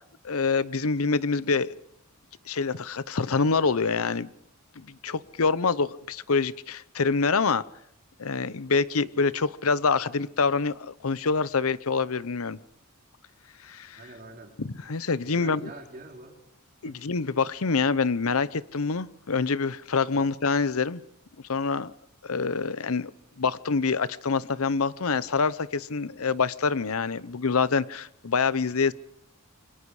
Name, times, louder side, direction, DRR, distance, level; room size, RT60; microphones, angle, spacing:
voice 1, 0.2-1.7 2.5-4.3 4.8-7.6 8.2-12.6 13.6-14.0 14.6-15.6 16.8-21.0 21.5-21.9 22.2-23.1 23.4-28.9, left 4 dB, 75° left, 0.8 m, -26 dB
voice 2, 14.0-14.5 15.2-16.4 16.8-17.0 20.1-20.3, right 2 dB, 40° right, 4.3 m, -44 dB
28.0 x 22.5 x 4.9 m
head